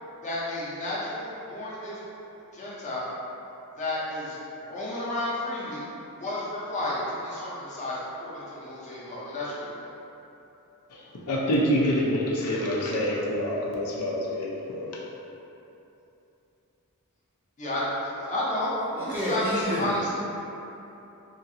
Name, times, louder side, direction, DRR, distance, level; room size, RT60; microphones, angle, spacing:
voice 1, 0.2-2.0 2.5-3.1 3.8-5.8 6.1-7.9 8.2-9.9 17.6-19.4 19.8-20.0, left 1 dB, 35° left, -7 dB, 0.6 m, -32 dB
voice 2, 10.9-15.0, equal, 85° left, -4 dB, 0.5 m, -27 dB
voice 3, 18.9-20.2, equal, 10° right, -10 dB, 0.6 m, -30 dB
2.8 x 2.4 x 2.7 m, 2.9 s
head